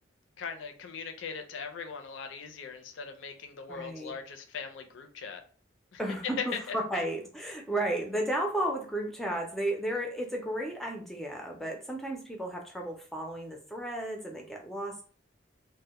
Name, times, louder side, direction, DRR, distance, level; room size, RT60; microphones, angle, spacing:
voice 1, 0.4-5.4 5.9-6.0 6.4-7.0, left 6 dB, 75° left, 5 dB, 0.4 m, -40 dB
voice 2, 3.7-4.1 6.0-15.0, right 1 dB, ahead, 1 dB, 0.3 m, -33 dB
2.1 x 2.1 x 2.8 m, 0.41 s
head